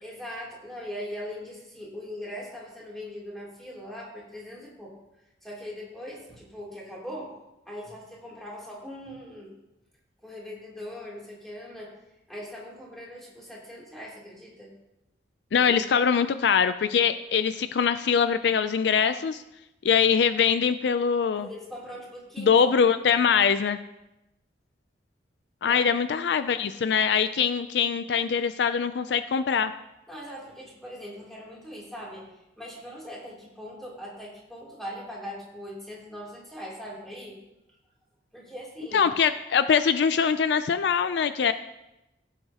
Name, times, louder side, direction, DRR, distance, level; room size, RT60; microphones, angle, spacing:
voice 1, 0.0-4.9 5.4-7.3 7.6-9.5 10.2-11.9 12.3-14.7 15.6-15.7 21.3-22.9 25.7-25.9 30.1-37.4 38.3-39.1, equal, ahead, -6 dB, 3.1 m, -40 dB
voice 2, 15.5-19.4 19.8-21.5 22.4-23.8 25.6-29.7 38.9-41.5, left 6 dB, 65° left, 11 dB, 0.4 m, -23 dB
16.5 x 7.8 x 2.9 m, 0.93 s
head